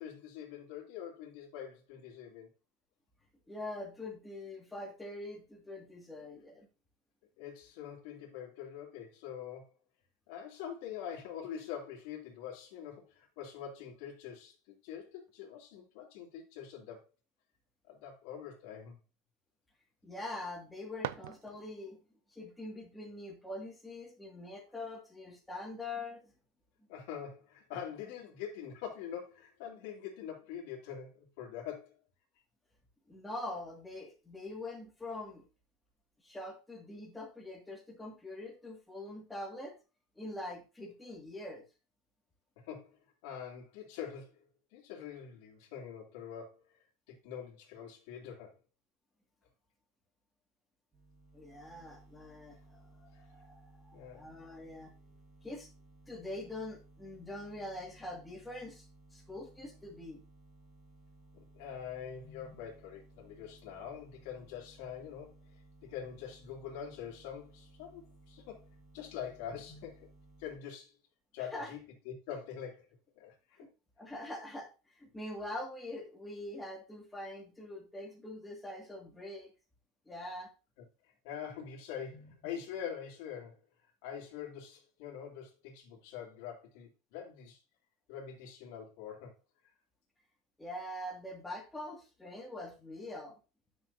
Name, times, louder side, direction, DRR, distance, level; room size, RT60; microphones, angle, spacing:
voice 1, 0.0-2.5 7.4-9.7 10.3-17.0 17.9-19.0 26.9-31.9 42.7-44.4 44.7-48.5 53.9-54.3 61.3-65.4 65.8-68.7 68.9-70.1 70.4-70.9 71.3-71.8 72.0-72.9 73.1-73.6 81.2-83.6 84.0-87.6 88.1-89.3, left 8 dB, 60° left, 2.9 m, -44 dB
voice 2, 3.5-6.7 20.0-22.0 22.3-26.3 33.1-35.5 36.2-39.8 40.2-41.6 51.3-54.9 55.4-55.7 56.1-58.9 59.1-60.2 62.2-62.5 69.5-69.8 71.5-71.7 73.6-73.7 74.0-79.5 80.1-80.5 82.1-82.3 90.6-93.4, left 1 dB, 5° left, 2.2 m, -44 dB
sound 1, 20.5-22.0, right 14 dB, 80° right, 0.5 m, -43 dB
sound 2, 50.9-70.6, right 1 dB, 25° right, 3.5 m, -60 dB
9.7 x 6.2 x 2.8 m
supercardioid pair, 150°, 0 cm